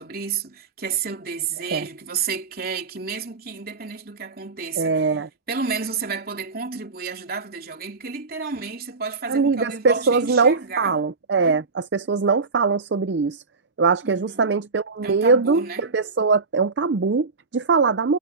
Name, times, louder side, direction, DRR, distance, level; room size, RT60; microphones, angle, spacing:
voice 1, 0.0-5.1 5.5-11.0 11.4-11.6 14.0-14.5 15.0-15.8, right 5 dB, 55° right, 3.1 m, -31 dB
voice 2, 4.8-5.3 9.3-13.4 13.8-15.6 15.9-18.2, right 4 dB, 75° right, 0.6 m, -21 dB
head